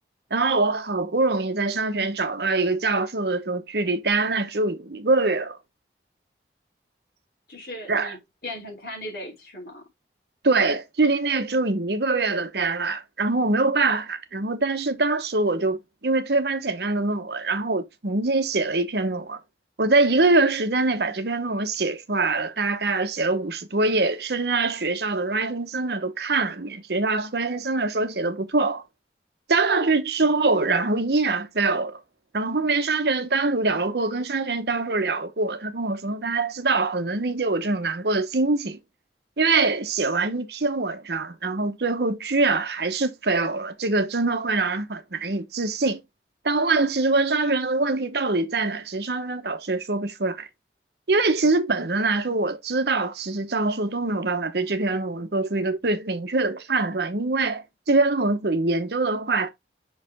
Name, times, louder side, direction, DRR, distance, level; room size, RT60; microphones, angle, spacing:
voice 1, 0.3-5.6 7.9-8.1 10.4-19.4 19.8-28.8 29.5-32.0 32.3-38.8 39.4-46.0 46.4-50.5 51.1-59.5, right 3 dB, 70° right, 0.9 m, -24 dB
voice 2, 7.5-9.9, left 1 dB, 55° left, 3.8 m, -38 dB
5.6 x 4.9 x 3.5 m
head